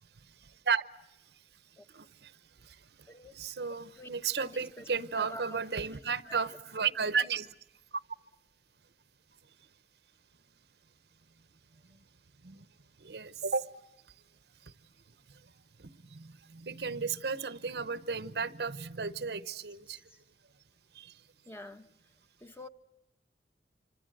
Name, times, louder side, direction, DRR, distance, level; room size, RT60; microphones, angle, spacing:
voice 1, 0.4-0.8 1.9-2.3 2.6-2.8 3.3-7.5 12.4-12.7 13.0-13.7 14.6-14.7 15.8-20.0 20.9-21.2, right 5 dB, 70° right, 15 dB, 0.9 m, -34 dB
voice 2, 4.4-5.6 6.2-6.4 21.5-21.9 22.4-22.7, equal, 15° left, 8 dB, 0.9 m, -46 dB
26.5 x 25.5 x 7.8 m, 0.91 s
head